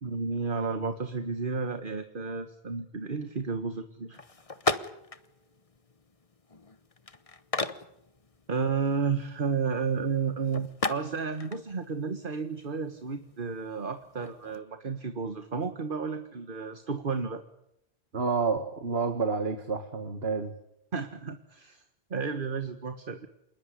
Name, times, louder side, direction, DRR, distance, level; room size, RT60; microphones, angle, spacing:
voice 1, 0.0-4.2 8.5-17.4 20.9-21.8 22.1-23.3, right 5 dB, 55° right, 9 dB, 1.7 m, -32 dB
sound 1, 4.1-14.6, left 3 dB, 35° left, 1.3 m, -38 dB
voice 2, 18.1-20.5, right 4 dB, 75° right, 9 dB, 2.0 m, -29 dB
27.5 x 20.0 x 9.9 m, 0.80 s
omnidirectional pair, 1.0 m